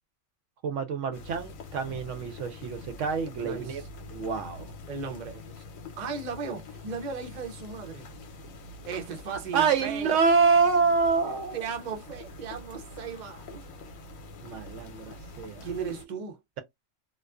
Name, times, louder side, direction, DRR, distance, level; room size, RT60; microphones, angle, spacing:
voice 1, 0.6-3.8 4.1-4.7 9.5-11.6 14.4-15.7, right 5 dB, 70° right, 0.9 m, -26 dB
sound 1, 1.1-16.1, left 3 dB, 80° left, 1.1 m, -45 dB
voice 2, 3.4-3.8 4.9-5.4 6.0-8.1 8.8-10.2 11.5-13.6 15.6-16.4, right 5 dB, 45° right, 0.6 m, -36 dB
2.5 x 2.3 x 2.2 m
omnidirectional pair, 1.4 m